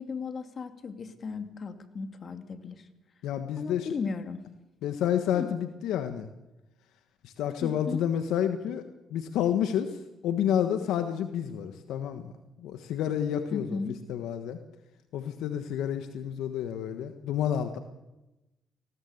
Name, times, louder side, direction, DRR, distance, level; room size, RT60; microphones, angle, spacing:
voice 1, 0.0-2.9 3.6-4.4 5.3-5.5 7.6-8.1 13.5-14.0, left 5 dB, 50° left, 8 dB, 2.4 m, -35 dB
voice 2, 3.2-3.9 4.8-6.3 7.2-12.3 12.6-13.8 14.1-14.6 15.1-17.8, left 9 dB, 80° left, 8 dB, 1.4 m, -30 dB
20.0 x 16.5 x 8.1 m, 0.97 s
supercardioid pair, 65°, 0 cm